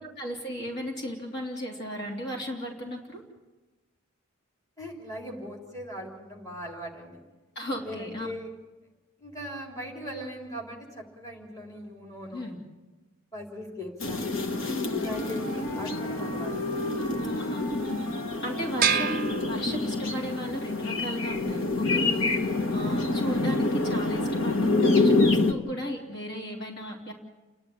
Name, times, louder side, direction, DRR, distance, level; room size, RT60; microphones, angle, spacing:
voice 1, 0.2-3.2 7.5-8.3 12.3-12.6 14.7-15.0 17.2-18.1 18.4-27.1, equal, 50° left, -1 dB, 3.2 m, -35 dB
voice 2, 4.8-7.2 7.8-8.5 9.2-12.5 13.3-14.6 15.0-16.5 18.9-19.1, equal, 15° left, -2 dB, 3.7 m, -39 dB
sound 1, 14.0-25.5, left 3 dB, 70° left, 1.5 m, -27 dB
Wind instrument woodwind instrument, 14.2-19.8, left 1 dB, 90° left, 5.3 m, -38 dB
sound 2, 18.8-20.3, right 8 dB, 40° right, 0.6 m, -28 dB
29.5 x 10.5 x 10.0 m, 1.2 s
head